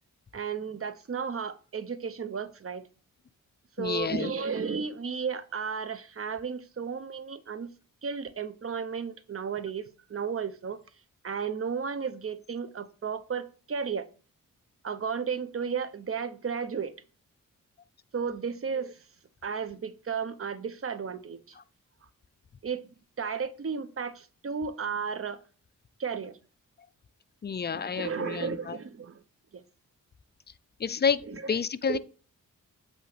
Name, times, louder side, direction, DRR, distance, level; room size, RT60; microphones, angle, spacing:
voice 1, 0.3-2.9 3.8-7.7 8.0-10.8 11.2-14.1 14.8-16.9 18.1-19.0 19.4-21.5 22.6-25.4 26.0-26.4 27.7-29.2 29.5-29.6 31.3-31.5 31.9-32.0, right 6 dB, 45° right, 0.8 m, -34 dB
voice 2, 3.8-4.3 27.4-28.8 30.8-32.0, left 6 dB, 30° left, 0.4 m, -29 dB
8.2 x 3.1 x 5.1 m
cardioid pair, 75°, 33 cm